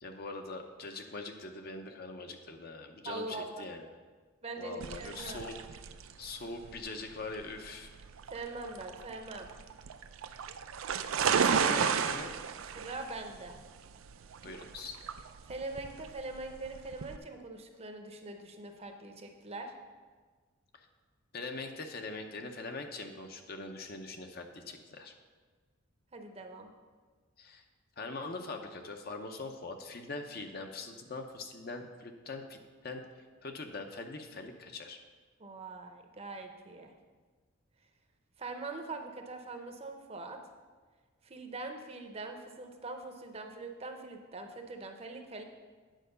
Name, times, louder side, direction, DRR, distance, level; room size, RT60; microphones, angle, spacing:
voice 1, 0.0-3.9 4.6-5.6 6.2-7.9 11.3-12.3 14.4-15.0 21.3-25.1 27.4-27.6 28.0-33.0 33.4-35.0, left 3 dB, 50° left, 5 dB, 0.7 m, -42 dB
voice 2, 3.0-3.7 4.4-5.4 8.3-9.5 12.8-13.6 15.5-19.7 26.1-26.7 35.4-36.9 38.4-40.4 41.2-45.4, right 3 dB, 30° right, 5 dB, 0.7 m, -42 dB
sound 1, 4.8-17.2, right 6 dB, 80° right, 0.4 m, -34 dB
9.0 x 4.7 x 6.6 m, 1.4 s
head